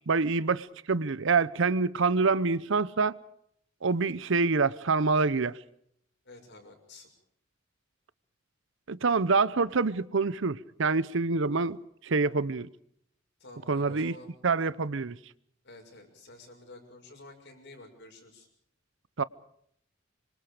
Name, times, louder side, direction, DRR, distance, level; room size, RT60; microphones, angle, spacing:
voice 1, 0.0-3.2 3.8-5.6 8.9-12.7 13.7-14.1 14.4-15.2 19.2-19.3, right 4 dB, 70° right, 0.8 m, -26 dB
voice 2, 6.2-7.1 13.4-14.3 15.6-18.5, left 2 dB, 60° left, 6.6 m, -50 dB
26.5 x 24.5 x 5.0 m
head